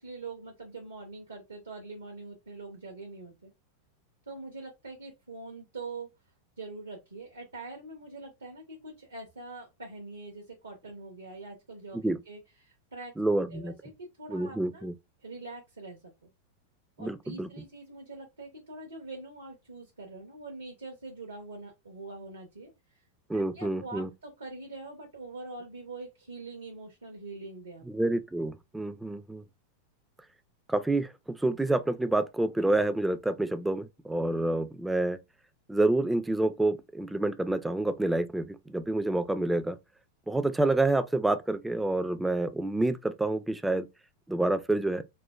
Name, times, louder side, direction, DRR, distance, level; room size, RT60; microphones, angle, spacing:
voice 1, 0.0-3.5 4.3-6.1 6.6-13.9 14.2-14.9 15.2-16.3 17.0-23.0 23.3-27.8, right 3 dB, 75° right, 0.7 m, -44 dB
voice 2, 13.2-13.7 14.3-14.9 17.0-17.5 23.3-24.1 27.9-29.4 30.7-35.2 35.7-39.8 40.3-43.9 44.3-45.0, right 2 dB, 5° right, 0.3 m, -28 dB
4.3 x 2.1 x 2.2 m
figure-of-eight pair, 90°, 0 cm